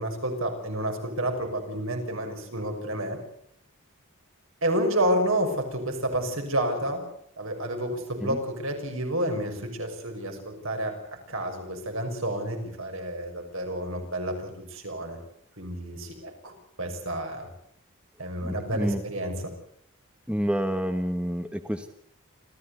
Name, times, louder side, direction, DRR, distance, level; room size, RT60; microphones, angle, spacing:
voice 1, 0.0-3.2 4.6-7.0 7.4-10.9 11.3-15.2 15.6-16.5 16.8-17.5 18.2-19.3, right 1 dB, 70° right, 4 dB, 6.2 m, -30 dB
voice 2, 18.4-19.0 20.3-21.9, equal, 5° right, 8 dB, 1.2 m, -29 dB
27.5 x 15.0 x 8.1 m, 0.70 s
head